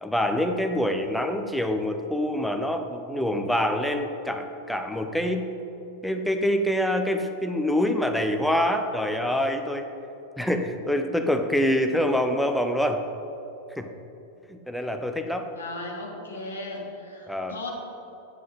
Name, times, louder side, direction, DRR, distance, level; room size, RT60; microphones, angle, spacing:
voice 1, 0.0-5.5 6.0-9.9 10.4-13.0 13.8-13.9 14.5-15.5 17.3-17.6, left 1 dB, ahead, 5 dB, 0.6 m, -25 dB
voice 2, 15.5-17.7, left 2 dB, 70° left, 0 dB, 1.3 m, -36 dB
7.9 x 7.6 x 3.9 m, 2.8 s
figure-of-eight pair, 90°, 0 cm